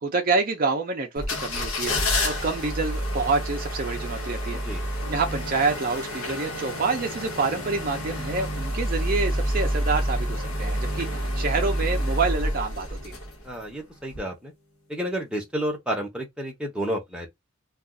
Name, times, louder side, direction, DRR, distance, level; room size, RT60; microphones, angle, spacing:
voice 1, 0.0-4.6 5.1-13.2, right 4 dB, 40° right, 0.5 m, -27 dB
sound 1, 1.2-13.6 14.1-14.2, equal, 75° left, 1.0 m, -28 dB
voice 2, 4.5-4.9 13.4-14.5 14.9-17.3, equal, 5° right, 0.8 m, -31 dB
2.4 x 2.3 x 3.7 m
head